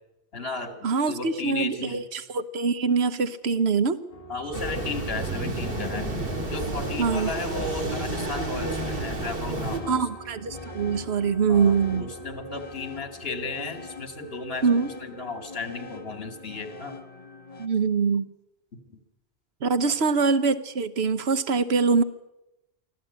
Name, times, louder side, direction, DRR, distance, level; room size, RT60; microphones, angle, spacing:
voice 1, 0.3-2.1 4.3-6.1 6.5-10.1 11.5-17.0 18.7-19.0 19.8-19.9, left 3 dB, 70° left, 7 dB, 2.8 m, -34 dB
voice 2, 0.8-4.0 7.0-7.3 9.9-12.1 14.6-14.9 17.6-18.3 19.6-22.0, right 5 dB, 85° right, 13 dB, 1.2 m, -24 dB
sound 1, 4.1-17.7, left 1 dB, 35° left, 1.6 m, -42 dB
sound 2, 4.5-9.8, right 2 dB, 60° right, 2.8 m, -31 dB
24.5 x 15.0 x 8.7 m, 0.92 s
omnidirectional pair, 1.0 m